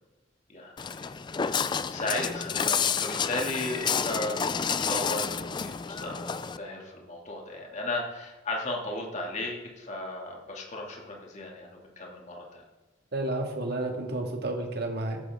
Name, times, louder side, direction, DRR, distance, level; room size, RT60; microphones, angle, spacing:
voice 1, 0.5-1.1 1.5-4.4 4.8-12.6, left 2 dB, 40° left, -1 dB, 2.4 m, -35 dB
Walk footsteps, 0.8-6.6, left 6 dB, 25° left, 0.3 m, -30 dB
voice 2, 13.1-15.2, right 2 dB, 55° right, 2 dB, 1.9 m, -31 dB
14.0 x 11.0 x 3.6 m, 1.2 s
head